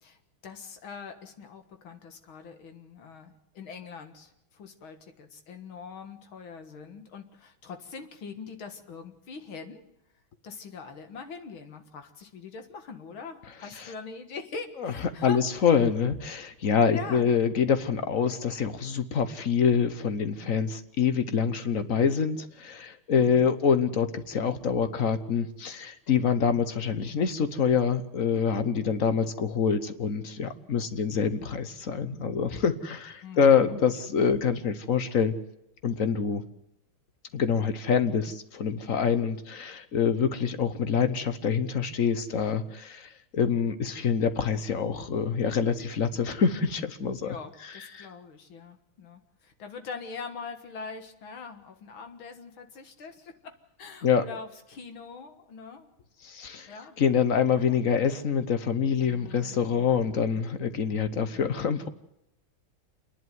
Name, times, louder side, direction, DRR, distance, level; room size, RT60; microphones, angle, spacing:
voice 1, 0.0-9.8 10.4-15.7 16.9-17.3 23.1-23.5 33.2-33.7 47.2-55.9 56.7-57.0 57.5-57.8 59.0-60.1, left 5 dB, 75° left, 7 dB, 2.5 m, -43 dB
voice 2, 15.2-35.3 35.8-36.4 37.3-47.3 47.9-48.1 54.0-54.2 56.2-61.9, left 6 dB, 50° left, 11 dB, 1.2 m, -26 dB
27.5 x 11.0 x 9.4 m, 0.84 s
omnidirectional pair, 2.3 m